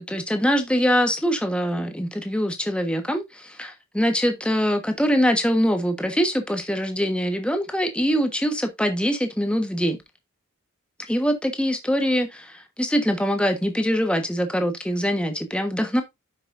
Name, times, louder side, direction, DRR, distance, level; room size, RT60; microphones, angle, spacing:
voice 1, 0.0-10.0 11.1-16.0, equal, 5° left, 1.2 m, -23 dB
10.0 x 5.9 x 2.5 m
head